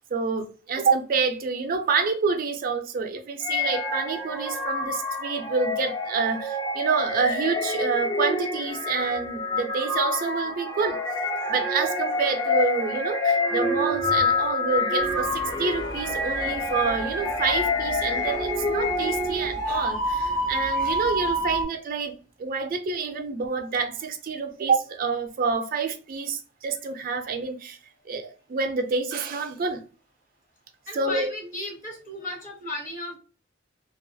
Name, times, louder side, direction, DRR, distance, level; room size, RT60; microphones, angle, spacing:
voice 1, 0.1-11.0 11.5-27.8 28.1-29.8 30.9-31.3, right 5 dB, 50° right, 0.4 m, -27 dB
sound 1, 3.4-19.6, left 2 dB, 20° left, 0.4 m, -27 dB
sound 2, 15.0-21.6, right 1 dB, 80° left, 0.9 m, -30 dB
voice 2, 30.9-33.2, left 1 dB, 45° left, 1.0 m, -34 dB
2.4 x 2.3 x 2.5 m
head